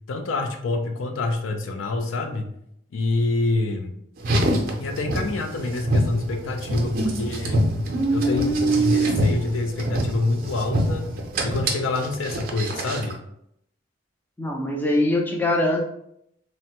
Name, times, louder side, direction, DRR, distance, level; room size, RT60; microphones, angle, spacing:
voice 1, 0.1-2.5 2.9-3.9 4.8-7.6 8.1-11.1 11.4-13.2, left 2 dB, 85° left, 5 dB, 0.4 m, -26 dB
Car, 4.2-13.2, right 1 dB, 45° right, 0.5 m, -24 dB
voice 2, 14.4-15.8, left 1 dB, 10° left, 0 dB, 0.3 m, -22 dB
3.3 x 2.1 x 2.8 m, 0.74 s
head